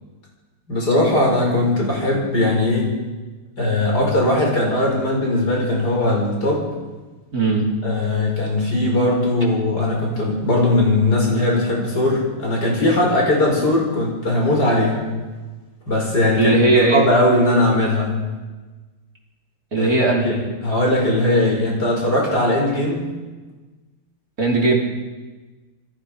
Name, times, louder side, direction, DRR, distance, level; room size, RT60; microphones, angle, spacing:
voice 1, 0.7-2.9 3.6-6.6 7.8-15.1 15.9-16.6 16.9-18.1 19.8-19.9 20.2-20.3 20.6-23.1, left 1 dB, 45° left, -2 dB, 6.1 m, -19 dB
voice 2, 7.3-7.7 16.4-17.0 19.7-20.4 24.4-24.7, right 2 dB, 40° right, -1 dB, 3.8 m, -18 dB
28.0 x 20.5 x 5.2 m, 1.3 s
omnidirectional pair, 2.3 m